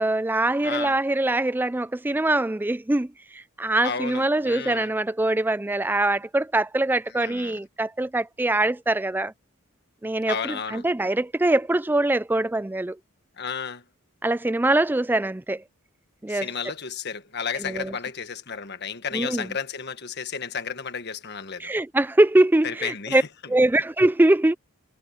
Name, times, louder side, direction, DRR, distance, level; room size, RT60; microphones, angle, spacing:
voice 1, 0.0-9.3 10.0-13.0 14.2-15.6 16.2-16.5 17.5-17.9 19.1-19.5 21.6-23.2 23.5-24.6, right 2 dB, 10° right, 0.4 m, -23 dB
voice 2, 0.6-1.0 3.8-4.9 7.2-7.6 10.3-10.9 13.4-13.8 16.3-21.7 22.6-23.3, left 6 dB, 50° left, 1.5 m, -32 dB
head